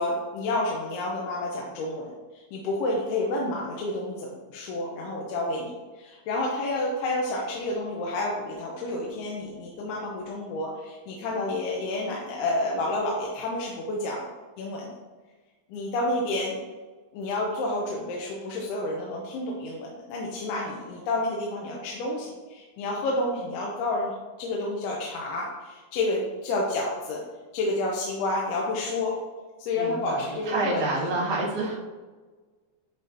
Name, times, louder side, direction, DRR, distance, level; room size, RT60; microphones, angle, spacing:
voice 1, 0.0-14.3 14.6-14.9 15.7-16.6 17.1-27.2 27.5-29.1 29.6-31.1, left 2 dB, 85° left, -3 dB, 2.7 m, -30 dB
voice 2, 29.7-31.8, right 2 dB, 55° right, -8 dB, 3.0 m, -28 dB
10.5 x 3.7 x 2.7 m, 1.3 s
omnidirectional pair, 4.6 m